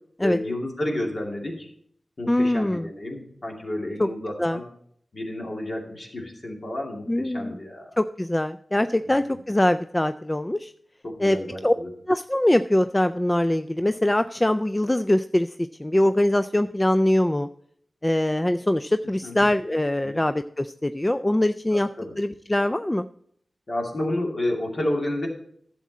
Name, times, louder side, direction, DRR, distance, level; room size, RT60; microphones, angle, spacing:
voice 1, 0.2-1.7 2.2-4.6 5.1-8.0 9.0-9.1 11.0-11.9 19.2-19.3 20.0-20.2 21.7-22.1 23.7-25.3, left 1 dB, 50° left, 0 dB, 2.5 m, -30 dB
voice 2, 2.3-2.9 4.0-4.1 4.4-4.6 7.1-7.6 8.0-10.7 11.2-11.4 11.6-11.7 12.1-17.5 18.0-21.9 22.2-23.1, left 1 dB, 20° left, 10 dB, 0.3 m, -23 dB
11.0 x 7.4 x 4.2 m, 0.65 s
cardioid pair, 55°, 0 cm